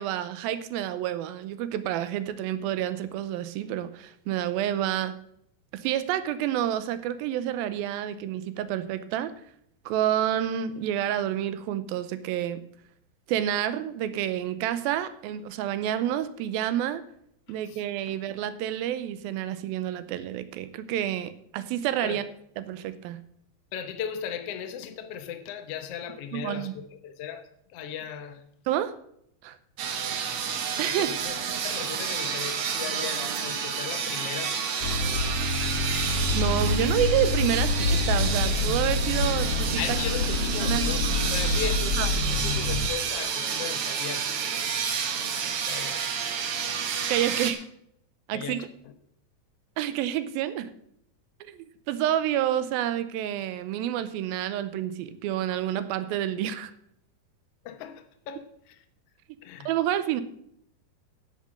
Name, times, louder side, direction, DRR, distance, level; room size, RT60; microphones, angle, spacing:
voice 1, 0.0-5.1 5.7-9.3 9.9-12.6 13.3-17.0 17.5-22.2 22.6-23.2 26.3-26.7 28.7-28.9 29.4-29.6 30.8-31.1 36.3-40.0 40.6-40.9 42.0-42.1 47.1-47.6 48.3-48.6 49.8-50.7 51.4-56.7 59.7-60.2, right 11 dB, 85° right, 2.5 m, -29 dB
voice 2, 23.7-27.4 27.7-28.4 30.8-31.4 31.6-34.8 39.8-44.3 45.6-46.1 48.3-48.6 57.6-58.7 59.4-59.7, left 8 dB, 90° left, 1.3 m, -37 dB
sound 1, 29.8-47.5, right 7 dB, 70° right, 1.3 m, -30 dB
sound 2, 34.8-42.9, left 3 dB, 65° left, 1.7 m, -27 dB
11.0 x 7.4 x 6.4 m
omnidirectional pair, 4.2 m